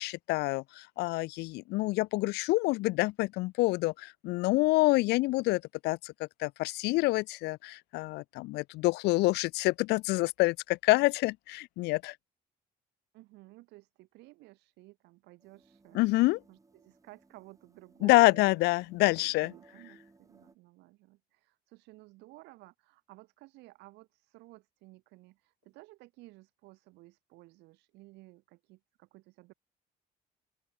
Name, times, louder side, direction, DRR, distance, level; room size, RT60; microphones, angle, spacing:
voice 1, 0.0-12.1 15.9-16.4 18.0-19.5, left 21 dB, 80° left, 0.4 m, -27 dB
voice 2, 13.1-16.0 16.5-18.6 19.1-29.5, right 21 dB, 90° right, 1.5 m, -55 dB
sound 1, 15.4-20.6, right 3 dB, 20° right, 4.0 m, -62 dB
open air
cardioid pair, 110°, 17 cm